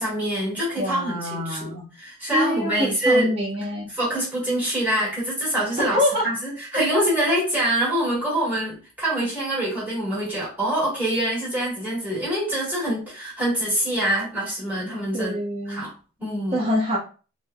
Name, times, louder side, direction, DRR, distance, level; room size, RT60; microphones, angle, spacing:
voice 1, 0.0-3.3 3.9-6.0 6.2-15.3 15.7-15.9 16.2-16.6, right 1 dB, 10° right, -7 dB, 1.5 m, -25 dB
voice 2, 0.8-1.8 2.3-3.9 5.8-6.3 15.1-15.8 16.5-17.0, left 1 dB, 30° right, -3 dB, 0.9 m, -25 dB
3.1 x 2.1 x 2.3 m, 0.36 s
head